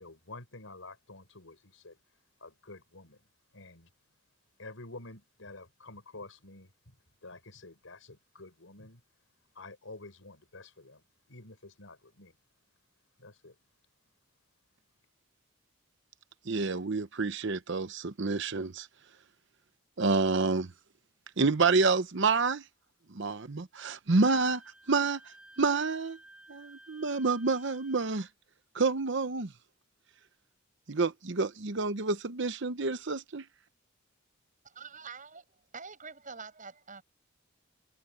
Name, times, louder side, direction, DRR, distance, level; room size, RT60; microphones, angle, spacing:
voice 1, 0.0-2.0 2.4-3.3 3.5-3.9 4.6-7.0 7.2-9.0 9.5-12.4 13.2-13.6, left 2 dB, 75° left, 4.6 m, -49 dB
voice 2, 16.5-18.9 20.0-20.7 21.4-22.6 23.1-24.6 24.9-26.2 26.5-28.3 28.7-29.5 30.9-33.4, right 4 dB, 60° right, 0.9 m, -28 dB
Wind instrument woodwind instrument, 24.2-28.2, right 2 dB, 5° right, 1.4 m, -55 dB
voice 3, 34.7-37.0, right 5 dB, 40° right, 7.6 m, -46 dB
head